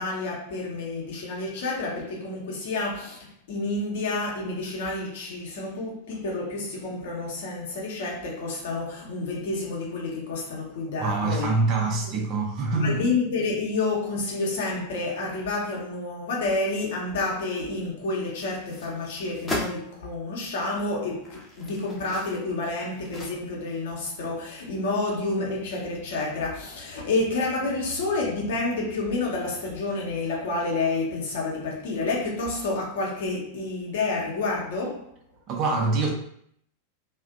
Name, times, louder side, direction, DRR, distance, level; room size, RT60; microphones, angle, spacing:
voice 1, 0.0-11.5 12.1-12.2 12.8-35.1, left 3 dB, 55° left, 0.7 m, -29 dB
voice 2, 11.0-13.2 35.5-36.1, right 3 dB, 35° right, 0.5 m, -25 dB
sound 1, 18.2-19.8 20.5-20.6 21.1-23.8 24.1-24.2, left 1 dB, 15° left, 0.6 m, -37 dB
2.4 x 2.1 x 2.4 m
figure-of-eight pair, 90°, 0 cm